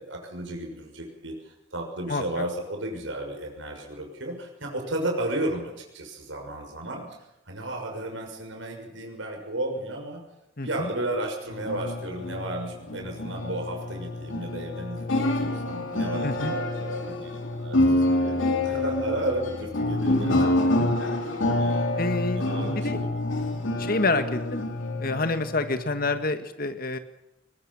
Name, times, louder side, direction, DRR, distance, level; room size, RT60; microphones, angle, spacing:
voice 1, 0.0-7.1 7.5-10.2 10.6-18.4 18.6-21.1 21.6-23.2 23.8-23.9, right 1 dB, 80° right, 2 dB, 6.3 m, -34 dB
voice 2, 10.6-10.9 16.2-16.5 20.8-20.9 22.0-22.4 22.7-23.0 23.8-24.6 25.0-27.0, left 3 dB, 50° left, 9 dB, 1.7 m, -27 dB
sound 1, 11.5-26.2, left 1 dB, 85° left, 3.1 m, -27 dB
21.5 x 20.5 x 7.2 m, 0.88 s
head